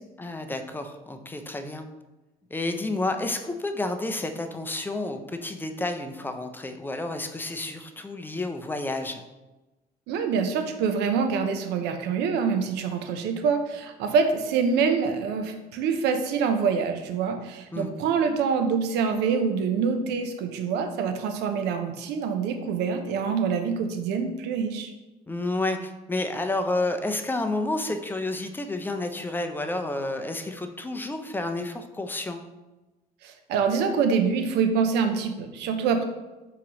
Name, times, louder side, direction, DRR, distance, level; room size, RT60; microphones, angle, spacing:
voice 1, 0.2-1.9 2.5-9.2 17.7-17.9 25.3-32.4, left 2 dB, 10° left, 6 dB, 0.4 m, -30 dB
voice 2, 10.1-24.9 33.2-36.0, right 6 dB, 85° right, 6 dB, 0.6 m, -25 dB
4.7 x 3.8 x 2.9 m, 1.1 s
cardioid pair, 110°, 17 cm